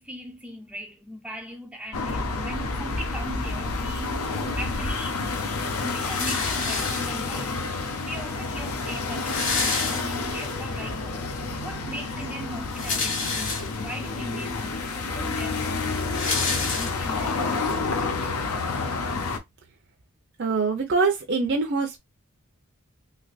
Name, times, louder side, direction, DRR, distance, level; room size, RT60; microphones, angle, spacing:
voice 1, 0.0-5.2 5.8-7.7 8.0-11.3 11.6-15.9 16.2-18.2, equal, 5° right, 0.4 m, -39 dB
sound 1, 1.9-19.4, left 3 dB, 90° left, 0.7 m, -29 dB
sound 2, 6.0-7.4 8.3-8.4 8.6-8.7 8.9-10.5 11.0-11.1 12.5-14.0 14.6-14.7 15.0-17.3, left 4 dB, 60° left, 1.4 m, -29 dB
voice 2, 20.4-22.0, right 4 dB, 50° right, 0.6 m, -24 dB
3.3 x 3.0 x 2.4 m
head